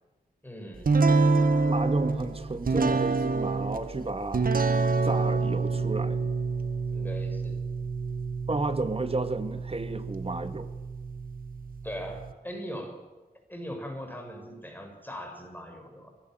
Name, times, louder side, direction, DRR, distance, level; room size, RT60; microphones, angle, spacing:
voice 1, 0.4-0.9 6.9-7.6 11.8-13.0 13.5-16.1, equal, 10° left, 3 dB, 6.5 m, -40 dB
sound 1, 0.8-12.3, right 4 dB, 65° right, 1.8 m, -27 dB
voice 2, 1.6-4.5 5.0-6.2 8.5-10.7, right 2 dB, 35° right, 9 dB, 2.1 m, -32 dB
24.0 x 19.0 x 7.8 m, 1.2 s
wide cardioid pair, 85°, 16 cm